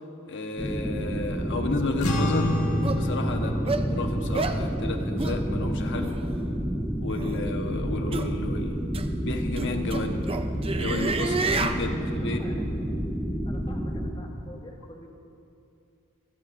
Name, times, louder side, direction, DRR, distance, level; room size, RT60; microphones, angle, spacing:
voice 1, 0.3-2.6 2.9-6.2 7.0-8.9 9.2-10.2 10.8-12.4, left 2 dB, 55° left, 4 dB, 1.2 m, -32 dB
sound 1, 0.6-14.1, equal, ahead, 0.9 m, -30 dB
sound 2, 2.0-8.6, left 1 dB, 75° left, 1.5 m, -31 dB
sound 3, 2.1-2.2 2.8-3.0 3.7-3.8 4.3-4.6 5.2-5.4 6.0-6.1 7.1-7.4 8.1-8.3 8.9-9.1 9.5-11.8, right 4 dB, 25° right, 0.6 m, -29 dB
voice 2, 3.3-3.7 11.2-13.1 13.5-15.1, left 1 dB, 25° left, -1 dB, 1.9 m, -46 dB
27.0 x 15.5 x 2.6 m, 2.6 s
head